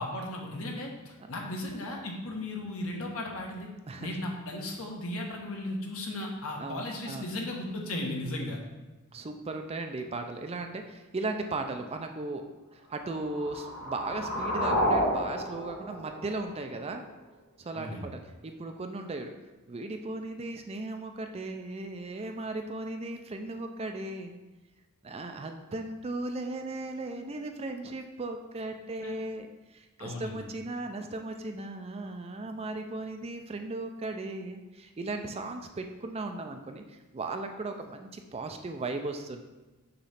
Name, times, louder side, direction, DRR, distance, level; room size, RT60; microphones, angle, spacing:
voice 1, 0.0-3.7 4.0-8.6 17.7-18.1 29.0-29.1 30.0-30.4, left 1 dB, 70° left, 0 dB, 1.2 m, -36 dB
voice 2, 6.6-7.3 8.2-8.5 9.1-12.4 12.7-17.0 17.6-19.3 19.7-24.4 25.0-39.4, right 2 dB, 25° right, 5 dB, 0.4 m, -37 dB
sound 1, 13.1-17.1, equal, 50° left, 1.4 m, -31 dB
6.7 x 3.1 x 5.7 m, 1.1 s
head